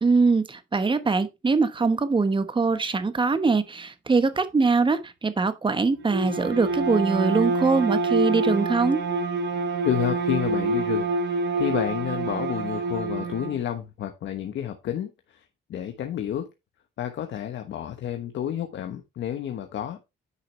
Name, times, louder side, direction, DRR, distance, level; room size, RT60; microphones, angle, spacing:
voice 1, 0.0-9.0, right 4 dB, 25° right, 1.1 m, -22 dB
Bowed string instrument, 6.0-13.6, right 3 dB, 60° right, 4.6 m, -26 dB
voice 2, 9.8-11.1 11.6-16.5 17.0-20.0, left 10 dB, 70° left, 1.1 m, -30 dB
9.6 x 5.9 x 3.3 m
cardioid pair, 90°, 20 cm